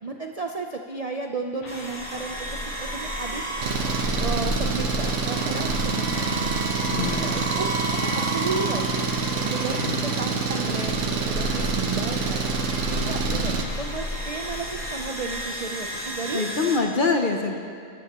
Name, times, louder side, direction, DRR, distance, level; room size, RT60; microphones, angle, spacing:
voice 1, 0.0-3.4 4.2-6.4 7.0-7.7 7.9-9.1 9.4-12.5 12.9-16.4 17.5-17.6, right 3 dB, 70° right, 3 dB, 0.3 m, -33 dB
sound 1, 1.6-16.9, left 5 dB, 65° left, 1.2 m, -41 dB
sound 2, 1.7-16.8, right 1 dB, 35° right, 1.9 m, -32 dB
Engine, 3.6-13.6, right 4 dB, 55° right, 1.1 m, -27 dB
voice 2, 6.8-7.5 9.7-10.1 16.3-17.6, left 4 dB, 45° left, 4 dB, 0.7 m, -25 dB
21.0 x 12.5 x 3.0 m, 2.4 s
omnidirectional pair, 1.6 m